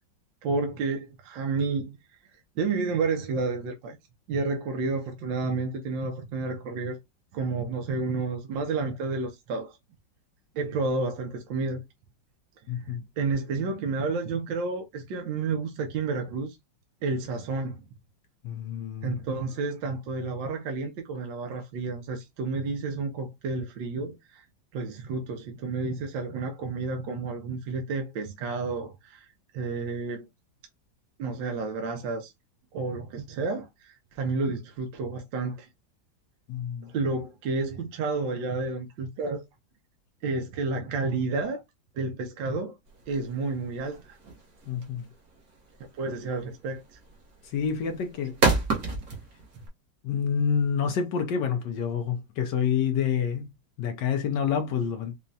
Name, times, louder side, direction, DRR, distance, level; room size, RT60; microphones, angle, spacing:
voice 1, 0.4-2.0 2.6-4.0 4.3-7.0 7.3-9.8 10.5-11.8 12.8-16.6 17.0-17.8 19.0-24.4 24.7-29.3 29.5-30.2 31.2-32.3 32.7-35.7 36.8-39.4 40.2-41.6 41.9-42.7 43.1-44.2 45.9-47.0, right 3 dB, 70° right, 1.5 m, -30 dB
voice 2, 12.7-13.0 18.4-19.2 36.5-36.9 44.7-45.1 47.4-48.4 50.0-53.5 53.8-55.1, left 7 dB, 70° left, 1.2 m, -28 dB
sound 1, 42.9-49.7, right 3 dB, 50° right, 1.6 m, -29 dB
5.2 x 2.3 x 2.7 m
omnidirectional pair, 2.1 m